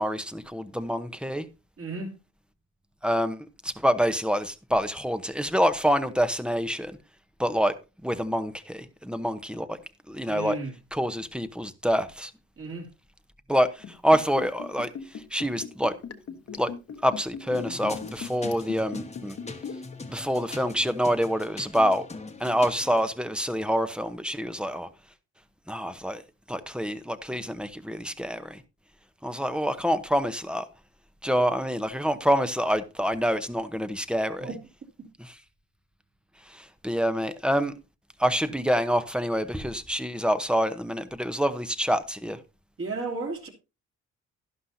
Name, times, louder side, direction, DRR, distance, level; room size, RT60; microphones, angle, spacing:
voice 1, 0.0-1.5 3.0-7.0 7.4-7.7 8.0-9.8 10.1-10.6 10.9-12.3 13.5-14.9 15.3-15.9 16.6-16.7 17.0-19.4 20.1-22.1 22.4-24.9 25.7-26.2 26.5-28.6 29.2-30.6 31.2-34.5 36.5-37.7 38.2-42.4, equal, 5° right, 0.9 m, -26 dB
voice 2, 1.8-2.1 10.2-10.7 12.6-12.9 34.4-34.6 42.8-43.5, right 3 dB, 45° right, 3.1 m, -33 dB
Liquid, 13.8-20.0 20.2-20.3, left 7 dB, 50° left, 1.2 m, -39 dB
Electronic future loop., 17.5-23.1, left 3 dB, 20° left, 1.3 m, -41 dB
11.5 x 11.5 x 2.7 m
cardioid pair, 90°, 30 cm